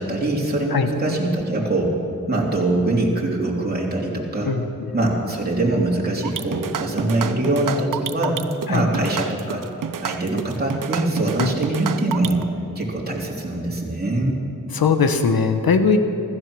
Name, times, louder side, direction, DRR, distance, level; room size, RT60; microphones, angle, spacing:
voice 1, 0.0-2.0 2.3-4.5 4.9-8.4 8.7-9.7 10.0-12.4 12.7-14.4, right 2 dB, 25° right, -3 dB, 3.2 m, -23 dB
voice 2, 4.4-4.9 8.7-8.8 11.4-11.5 14.7-16.0, left 5 dB, 90° left, 8 dB, 1.2 m, -20 dB
sound 1, 6.2-12.4, right 8 dB, 65° right, 0.7 m, -29 dB
15.5 x 13.5 x 6.2 m, 2.7 s
cardioid pair, 60°, 35 cm